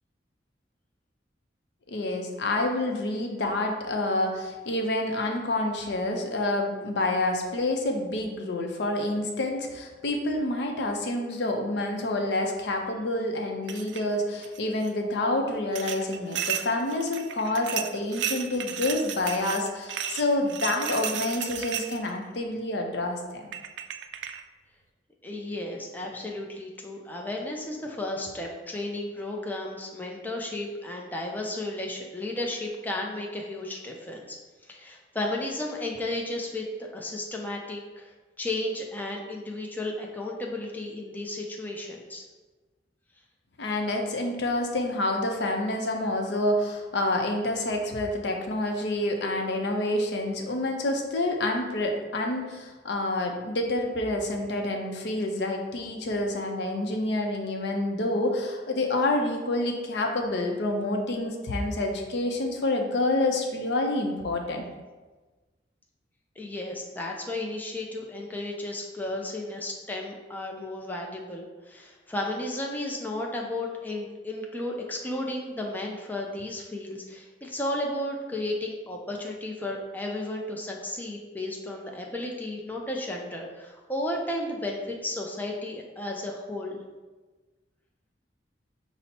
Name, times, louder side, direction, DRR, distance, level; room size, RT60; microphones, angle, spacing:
voice 1, 1.9-23.5 43.6-64.7, left 2 dB, 70° left, 3 dB, 0.6 m, -28 dB
sound 1, 13.7-14.1 14.4-14.9 15.8-22.1 23.1-23.2 23.5-24.4, right 9 dB, 75° right, 0.3 m, -34 dB
voice 2, 25.2-34.4 34.7-38.1 38.4-42.2 66.4-86.8, left 1 dB, 10° left, -1 dB, 0.4 m, -33 dB
5.4 x 2.1 x 4.2 m, 1.3 s
head